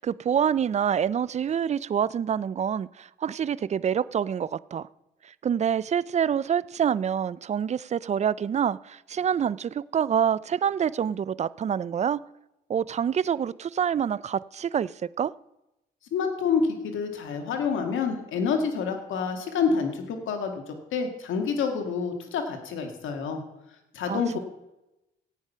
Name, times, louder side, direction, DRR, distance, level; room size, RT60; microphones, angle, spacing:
voice 1, 0.0-4.9 5.2-12.2 12.7-14.9 15.2-15.3 24.1-24.4, right 8 dB, 35° right, 0.4 m, -26 dB
voice 2, 16.1-23.4 23.9-24.4, left 5 dB, 80° left, 2.0 m, -28 dB
15.0 x 8.9 x 5.6 m
cardioid pair, 90°, 20 cm